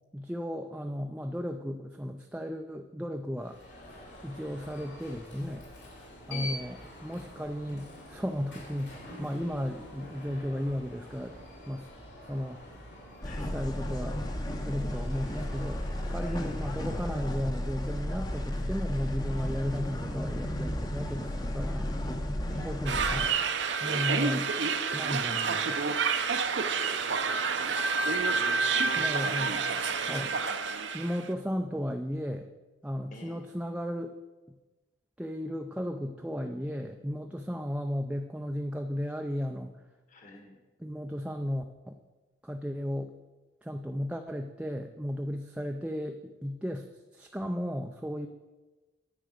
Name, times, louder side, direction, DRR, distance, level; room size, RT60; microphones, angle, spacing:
voice 1, 0.1-3.6 4.2-5.7 6.3-11.4 11.7-11.9 12.2-12.6 13.5-14.2 14.6-21.9 22.6-23.5 23.8-24.5 24.9-26.0 29.0-29.6 30.1-30.3 30.9-32.5 32.8-34.2 35.2-39.7 40.8-42.0 42.4-43.1 43.6-48.3, equal, 5° right, 4 dB, 0.4 m, -35 dB
Alarm, 3.4-17.3, left 1 dB, 65° left, 3.9 m, -47 dB
voice 2, 13.2-13.6 16.2-16.5 22.5-22.7 27.5-30.4 33.1-33.4 40.1-40.6, left 1 dB, 40° left, 2 dB, 1.5 m, -48 dB
sound 1, 13.2-23.3, left 1 dB, 20° left, 0.8 m, -33 dB
sound 2, 22.9-31.3, right 5 dB, 70° right, 0.7 m, -28 dB
10.0 x 8.1 x 6.4 m, 1.2 s
head